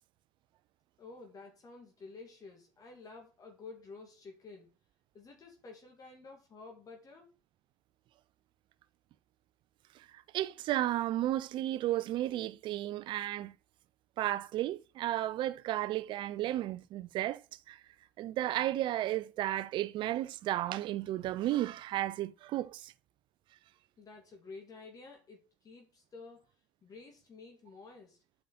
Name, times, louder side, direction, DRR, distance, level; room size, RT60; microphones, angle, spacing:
voice 1, 1.0-4.7 5.1-7.3 24.0-26.4 26.8-28.2, left 4 dB, 35° left, 2.2 m, -51 dB
voice 2, 10.0-13.5 14.2-17.4 17.7-17.8 18.2-22.9, right 14 dB, 50° right, 0.5 m, -33 dB
8.3 x 5.7 x 4.2 m
hypercardioid pair, 65°, 10 cm